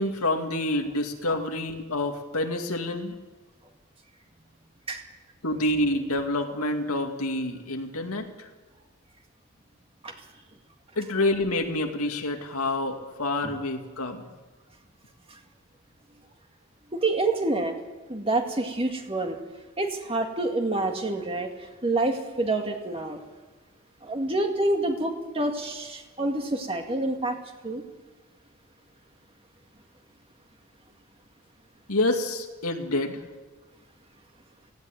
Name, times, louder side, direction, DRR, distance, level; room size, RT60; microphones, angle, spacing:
voice 1, 0.0-3.1 5.4-8.5 11.0-14.3 31.9-33.2, left 1 dB, 80° left, 4 dB, 2.2 m, -27 dB
voice 2, 16.9-17.8 18.1-19.4 19.8-23.2 24.0-27.4 27.6-27.8, right 2 dB, 25° right, 3 dB, 2.0 m, -27 dB
18.0 x 16.0 x 9.1 m, 1.2 s
head